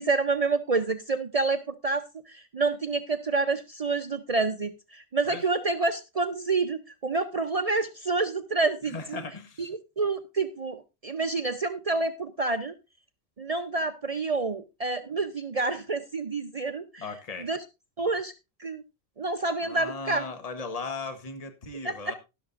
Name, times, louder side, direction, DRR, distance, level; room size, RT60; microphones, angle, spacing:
voice 1, 0.0-9.2 9.6-12.7 13.4-17.1 17.4-17.6 18.0-18.3 18.6-18.8 19.2-20.2 21.8-22.1, right 3 dB, 40° right, 0.7 m, -28 dB
voice 2, 8.9-9.7 17.0-17.5 19.6-22.1, left 4 dB, 40° left, 1.3 m, -37 dB
12.5 x 11.5 x 2.5 m
omnidirectional pair, 1.1 m